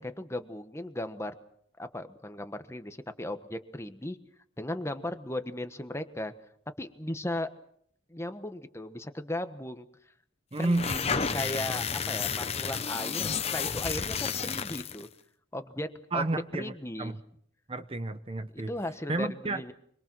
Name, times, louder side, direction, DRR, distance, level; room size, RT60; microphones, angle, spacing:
voice 1, 0.0-1.3 1.8-4.2 4.6-6.3 6.8-7.5 8.1-9.9 10.6-10.8 11.1-15.1 15.5-15.9 16.1-16.2 16.5-17.1 18.5-19.7, left 1 dB, 15° left, 9 dB, 1.2 m, -36 dB
voice 2, 10.5-11.2 16.1-16.7 17.0-17.2 17.7-18.7 19.1-19.6, right 2 dB, 30° right, 10 dB, 0.8 m, -31 dB
sound 1, 10.6-15.1, left 6 dB, 30° left, 0.9 m, -31 dB
25.5 x 23.0 x 6.2 m, 0.66 s
head